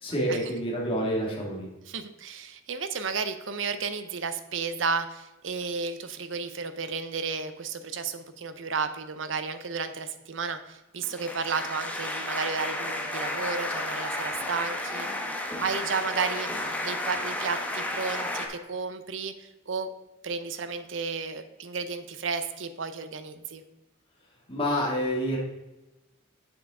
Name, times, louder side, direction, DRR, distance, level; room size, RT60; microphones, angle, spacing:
voice 1, 0.0-1.7 24.5-25.4, equal, 30° left, -3 dB, 2.0 m, -28 dB
voice 2, 1.9-15.1 15.6-19.9 20.2-23.6, right 5 dB, 70° right, 10 dB, 0.7 m, -33 dB
sound 1, 11.0-18.5, left 1 dB, 10° left, 1.0 m, -32 dB
7.7 x 7.1 x 3.7 m, 1.0 s
head